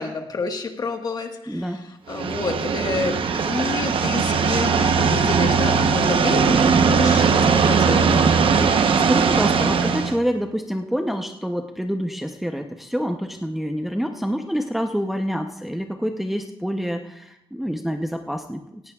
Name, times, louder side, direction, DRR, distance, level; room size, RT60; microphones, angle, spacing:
voice 1, 0.0-8.2, left 4 dB, 40° left, 4 dB, 1.4 m, -29 dB
voice 2, 1.5-1.8 8.7-18.8, equal, ahead, 4 dB, 0.7 m, -27 dB
sound 1, 2.1-10.1, right 5 dB, 65° right, 0.9 m, -19 dB
18.0 x 15.5 x 2.4 m, 0.87 s
wide cardioid pair, 155°, 10 cm